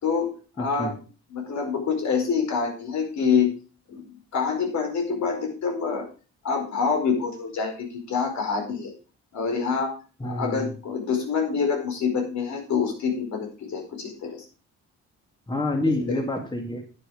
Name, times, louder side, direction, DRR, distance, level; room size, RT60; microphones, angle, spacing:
voice 1, 0.0-1.0 1.3-3.5 3.9-6.0 6.4-8.9 9.3-9.9 10.2-14.4 16.1-16.2, left 5 dB, 65° left, 2 dB, 4.8 m, -26 dB
voice 2, 0.6-0.9 10.2-10.7 15.5-16.8, left 1 dB, 15° left, 3 dB, 2.3 m, -27 dB
11.0 x 8.0 x 5.1 m, 0.36 s
cardioid pair, 90°, 30 cm